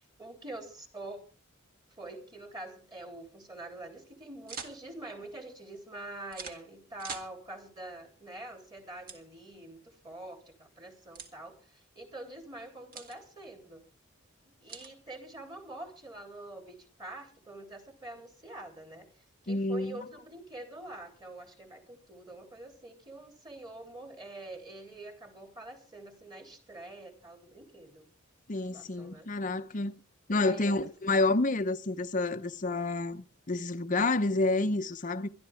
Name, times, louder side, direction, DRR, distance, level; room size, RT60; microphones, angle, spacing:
voice 1, 0.2-1.2 2.0-13.8 14.4-19.1 19.4-28.1 28.7-29.3 30.3-30.9, right 2 dB, 20° right, 3.3 m, -45 dB
sound 1, 4.5-4.8 6.3-6.6 7.0-7.3 9.1-9.2 11.1-11.3 12.9-13.2 14.7-14.9, right 5 dB, 45° right, 1.9 m, -42 dB
voice 2, 19.5-20.0 28.5-30.0 30.3-35.3, left 2 dB, 40° left, 0.8 m, -29 dB
22.5 x 13.0 x 3.5 m
head